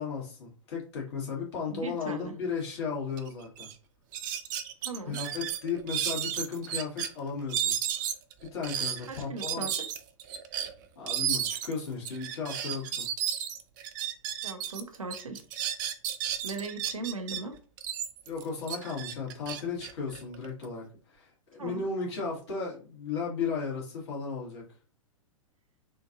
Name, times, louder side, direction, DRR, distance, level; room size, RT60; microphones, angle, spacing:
voice 1, 0.0-3.7 5.1-7.7 8.5-9.7 11.0-13.1 18.3-24.6, left 5 dB, 50° left, -3 dB, 1.8 m, -35 dB
voice 2, 1.7-2.3 4.8-5.2 9.1-9.7 14.4-15.4 16.4-17.5 21.6-21.8, right 3 dB, 75° right, 5 dB, 0.8 m, -38 dB
sound 1, 3.2-3.3 3.6-3.7 4.1-7.1 7.5-14.8 15.1-17.4 17.8-20.7, right 10 dB, 35° right, 0.4 m, -33 dB
3.8 x 2.5 x 2.6 m, 0.38 s
figure-of-eight pair, 110°, 17 cm